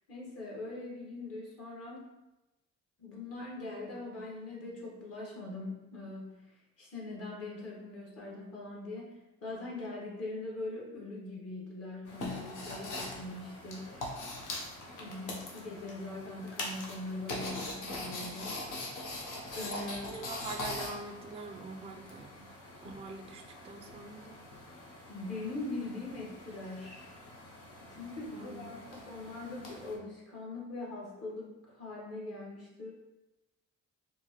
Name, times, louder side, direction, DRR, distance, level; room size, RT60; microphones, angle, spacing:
voice 1, 0.1-2.1 3.0-6.5 6.8-9.1 9.4-14.0 15.0-18.6 19.5-20.2 25.1-27.0 27.8-32.9, left 2 dB, 50° left, -3 dB, 1.3 m, -42 dB
sound 1, 12.1-29.9, left 2 dB, 80° left, 0.8 m, -43 dB
voice 2, 20.1-22.3 22.8-24.4 28.3-29.1, right 2 dB, 20° right, 3 dB, 0.3 m, -44 dB
4.4 x 2.2 x 2.9 m, 1.0 s
cardioid pair, 90°, 30 cm